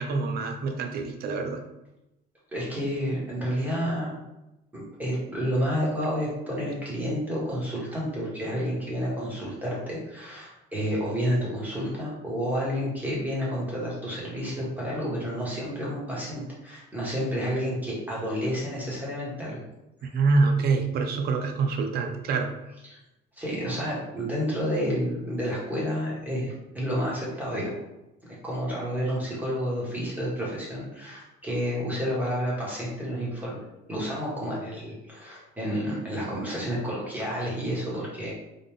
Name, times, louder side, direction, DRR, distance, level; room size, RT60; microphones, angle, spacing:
voice 1, 0.0-1.6 20.1-22.5, right 4 dB, 50° right, 5 dB, 0.7 m, -25 dB
voice 2, 2.5-4.2 4.7-19.6 20.0-20.1 22.9-23.0 23.3-27.8 28.4-33.6 33.9-38.3, equal, 10° right, -6 dB, 1.6 m, -30 dB
3.9 x 3.4 x 3.6 m, 0.94 s
cardioid pair, 155°, 21 cm